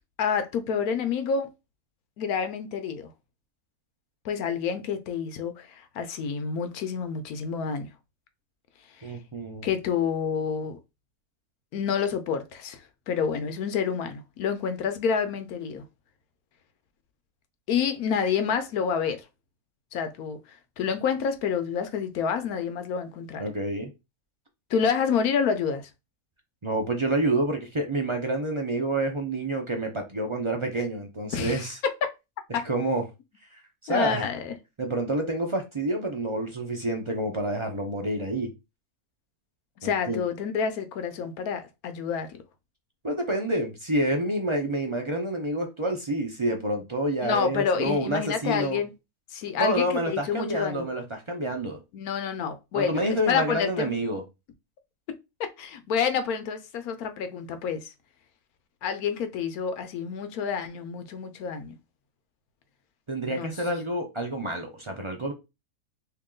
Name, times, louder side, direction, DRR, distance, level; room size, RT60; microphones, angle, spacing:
voice 1, 0.2-1.5 2.2-3.1 4.2-7.9 9.0-9.1 9.6-10.8 11.7-15.8 17.7-19.2 19.9-23.4 24.7-25.9 31.3-31.7 32.5-32.7 33.9-34.5 39.8-42.4 47.2-48.9 49.3-50.9 51.9-53.9 55.1-57.9 58.8-61.7 63.3-63.5, left 6 dB, 80° left, 1.1 m, -28 dB
voice 2, 9.0-9.7 23.4-23.9 26.6-31.8 32.5-33.0 33.5-34.3 34.8-38.5 39.8-40.2 43.0-48.8 49.6-51.8 52.7-54.2 63.1-65.3, right 1 dB, 40° right, 0.4 m, -28 dB
3.0 x 2.9 x 3.7 m
omnidirectional pair, 1.5 m